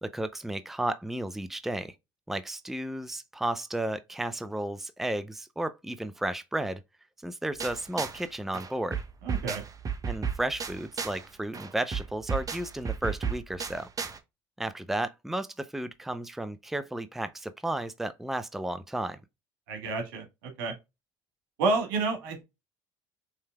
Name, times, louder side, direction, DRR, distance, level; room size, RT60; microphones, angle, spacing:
voice 1, 0.0-1.9 2.3-6.8 7.2-9.0 10.1-13.9 14.6-19.2, right 1 dB, ahead, 0.5 m, -33 dB
sound 1, 7.6-8.3 8.5-11.3 11.5-14.2, right 6 dB, 30° right, 0.9 m, -34 dB
voice 2, 9.2-9.6 19.7-20.2 20.6-20.7 21.6-22.4, right 3 dB, 80° right, 1.9 m, -29 dB
5.5 x 3.2 x 2.2 m
hypercardioid pair, 75°, 12 cm